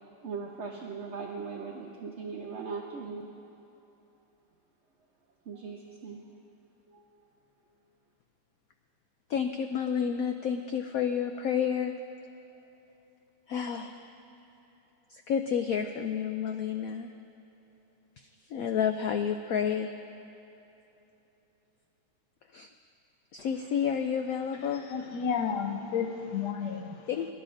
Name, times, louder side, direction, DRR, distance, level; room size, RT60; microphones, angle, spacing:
voice 1, 0.2-3.3 5.4-6.3 6.9-7.1, right 5 dB, 55° right, 0 dB, 0.8 m, -39 dB
voice 2, 9.3-11.9 13.5-14.0 15.1-17.1 18.2-19.9 22.5-22.7 23.3-25.0 27.1-27.3, left 8 dB, 90° left, 6 dB, 0.7 m, -30 dB
voice 3, 24.8-27.1, left 7 dB, 65° left, 5 dB, 1.4 m, -32 dB
22.5 x 12.0 x 2.6 m, 3.0 s
omnidirectional pair, 2.1 m